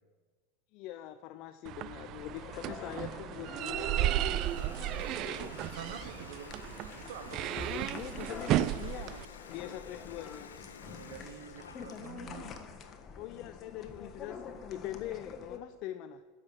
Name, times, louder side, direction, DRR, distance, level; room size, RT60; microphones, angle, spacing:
voice 1, 0.7-4.5 5.2-5.6 7.7-10.6 13.2-16.2, left 13 dB, 55° left, 10 dB, 0.4 m, -43 dB
sound 1, 1.6-9.2, right 13 dB, 50° right, 0.4 m, -34 dB
sound 2, 2.2-15.6, left 5 dB, 35° left, 1.3 m, -47 dB
Water tap faucet, 4.0-12.5, left 6 dB, 90° left, 0.7 m, -52 dB
voice 2, 5.5-6.5 7.1-7.9 10.8-12.5, right 8 dB, 70° right, 9 dB, 1.1 m, -46 dB
9.7 x 6.7 x 7.8 m, 1.5 s
hypercardioid pair, 90°, 0 cm